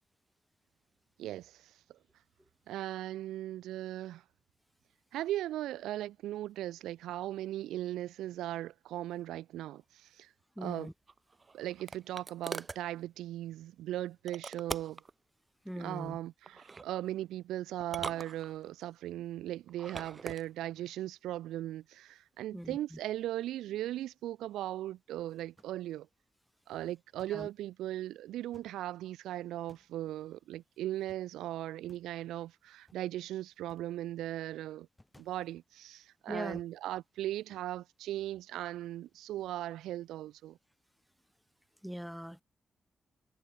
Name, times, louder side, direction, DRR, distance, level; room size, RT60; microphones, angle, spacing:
voice 1, 1.2-1.7 2.7-4.2 5.1-10.3 10.6-10.9 11.5-15.0 15.8-26.1 26.7-34.9 35.2-40.6, right 14 dB, 90° right, 0.7 m, -38 dB
voice 2, 10.6-10.9 15.7-16.2 22.5-23.0 27.3-27.5 36.3-36.6 41.8-42.4, equal, ahead, 0.3 m, -41 dB
sound 1, 11.1-12.8 14.3-15.1 16.5-16.9 17.8-18.9 19.7-20.4, right 4 dB, 45° right, 0.8 m, -42 dB
sound 2, 22.9-24.3 25.1-25.2 25.4-26.2 26.5-27.8 28.4-29.2 29.6-30.1 30.9-31.4 31.7-32.3 32.6-33.1 33.6-34.1 34.8-35.9 37.1-37.2 37.6-37.8, left 1 dB, 15° left, 4.0 m, -66 dB
supercardioid pair, 45°, 0 cm